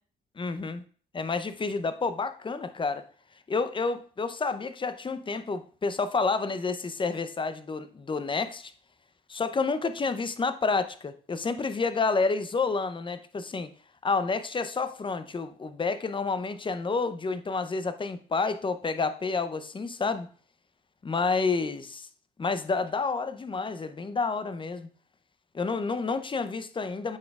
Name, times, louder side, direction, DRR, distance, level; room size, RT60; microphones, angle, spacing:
voice 1, 0.4-0.8 1.1-3.1 3.5-8.7 9.3-13.7 14.0-20.3 21.0-22.1 22.4-24.9 25.5-27.2, left 4 dB, 25° left, 11 dB, 0.6 m, -29 dB
8.2 x 5.1 x 2.4 m, 0.43 s
cardioid pair, 90°, 20 cm